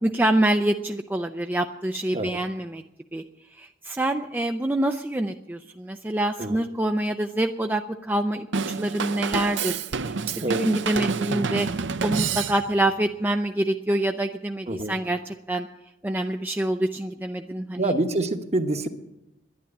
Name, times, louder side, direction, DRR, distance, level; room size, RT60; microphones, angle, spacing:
voice 1, 0.0-2.8 3.1-3.2 3.6-8.5 8.8-9.8 10.4-11.7 12.0-15.7 16.0-17.9, right 1 dB, 10° right, 5 dB, 0.4 m, -26 dB
Drum kit / Drum, 8.5-12.9, right 5 dB, 65° right, 0.6 m, -28 dB
voice 2, 17.8-18.9, right 2 dB, 35° right, 7 dB, 1.0 m, -26 dB
11.0 x 10.0 x 9.7 m, 0.91 s
head